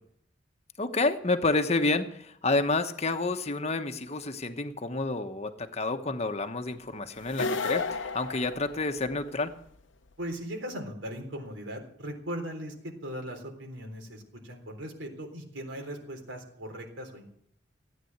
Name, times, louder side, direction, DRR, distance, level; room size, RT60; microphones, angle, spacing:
voice 1, 0.8-9.5, left 3 dB, 35° left, 7 dB, 1.1 m, -29 dB
sound 1, 7.3-9.3, left 4 dB, 80° left, 0.8 m, -32 dB
voice 2, 10.2-17.3, equal, 85° right, 2 dB, 3.8 m, -39 dB
15.0 x 9.3 x 7.9 m, 0.69 s
head